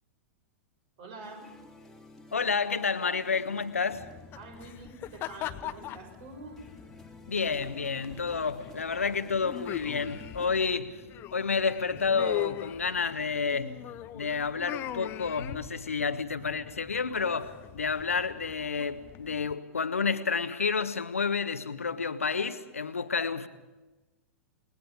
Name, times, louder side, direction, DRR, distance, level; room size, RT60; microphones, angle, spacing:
voice 1, 1.0-1.6 4.4-6.6, right 3 dB, 45° right, 6.3 m, -46 dB
sound 1, 1.2-10.6, left 2 dB, ahead, 3.0 m, -54 dB
voice 2, 2.3-4.1 7.3-11.0 11.3-13.8 14.1-23.5, left 5 dB, 75° left, 1.3 m, -30 dB
sound 2, 3.9-19.5, left 13 dB, 30° left, 0.9 m, -42 dB
29.0 x 20.5 x 5.1 m
figure-of-eight pair, 100°, 8 cm